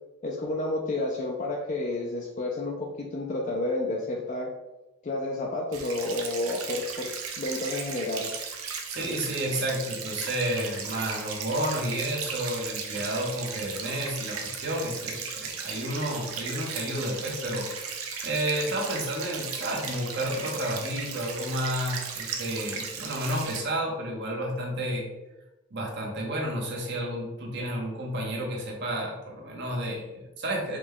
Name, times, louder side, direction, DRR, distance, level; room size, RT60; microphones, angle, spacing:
voice 1, 0.2-4.5 5.0-7.1 7.4-8.3, left 2 dB, 35° left, -1 dB, 0.4 m, -30 dB
sound 1, 5.7-23.6, right 6 dB, 80° right, 0.7 m, -36 dB
voice 2, 8.9-17.7 17.9-25.1 25.7-30.8, right 1 dB, 55° right, -1 dB, 1.0 m, -31 dB
4.8 x 2.3 x 3.6 m, 1.0 s
head